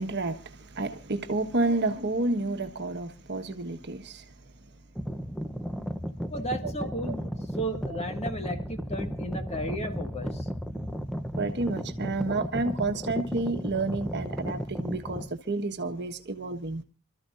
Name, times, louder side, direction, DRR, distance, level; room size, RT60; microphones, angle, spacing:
voice 1, 0.0-4.2 6.6-7.3 11.3-16.8, right 2 dB, 50° right, 1.4 m, -30 dB
sound 1, 5.0-15.3, equal, ahead, 0.7 m, -34 dB
voice 2, 6.3-7.2 7.6-10.5, right 1 dB, 30° left, 2.0 m, -34 dB
28.5 x 14.0 x 2.6 m
head